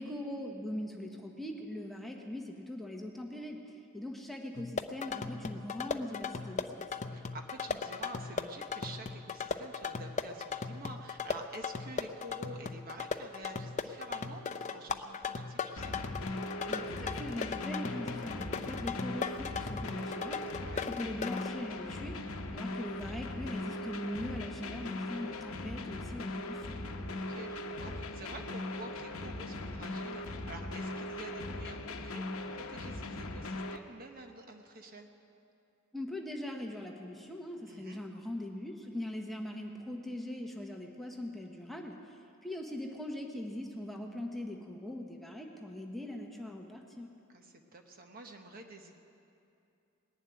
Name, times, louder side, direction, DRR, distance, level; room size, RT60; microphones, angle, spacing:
voice 1, 0.0-6.9 16.7-20.4 20.8-22.2 22.5-26.8 35.9-42.0 42.4-47.1, left 1 dB, ahead, 1 dB, 1.0 m, -41 dB
sound 1, 4.6-21.5, left 5 dB, 35° left, 0.5 m, -38 dB
voice 2, 7.1-15.9 20.5-20.9 27.1-35.1 37.7-38.0 47.3-49.0, right 2 dB, 40° right, 4 dB, 1.0 m, -48 dB
sound 2, 15.8-33.8, left 2 dB, 70° left, 0.9 m, -39 dB
19.5 x 7.4 x 9.5 m, 2.7 s
head